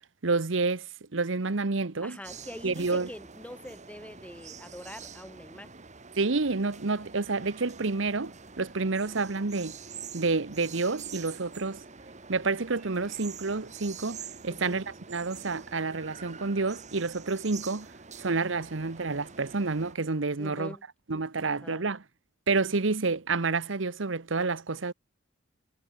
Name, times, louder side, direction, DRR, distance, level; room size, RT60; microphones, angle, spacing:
voice 1, 0.2-2.2 2.6-3.1 6.2-9.7 10.1-11.8 12.3-17.9 18.2-20.8 21.1-22.0 22.5-24.9, right 3 dB, 70° right, 1.1 m, -29 dB
voice 2, 2.0-5.7 14.5-14.8 20.4-20.8 21.4-21.9, left 1 dB, 5° left, 4.5 m, -44 dB
sound 1, 2.2-19.9, right 6 dB, 35° right, 2.2 m, -46 dB
head